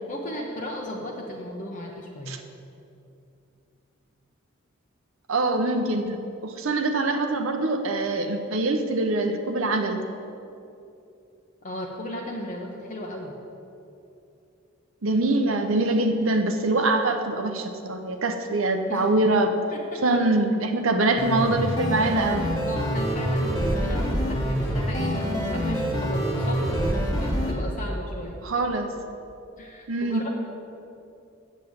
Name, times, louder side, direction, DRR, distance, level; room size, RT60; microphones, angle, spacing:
voice 1, 0.1-2.3 11.6-13.3 18.9-19.1 19.7-20.0 22.6-28.4 29.6-30.3, left 1 dB, 40° left, -2 dB, 0.9 m, -35 dB
voice 2, 5.3-6.2 6.4-10.0 15.0-19.6 20.0-22.5 28.4-28.9 29.9-30.2, right 2 dB, 75° right, 5 dB, 0.8 m, -24 dB
sound 1, 21.2-27.5, equal, 15° left, 1.4 m, -26 dB
7.8 x 7.3 x 7.9 m, 2.7 s
head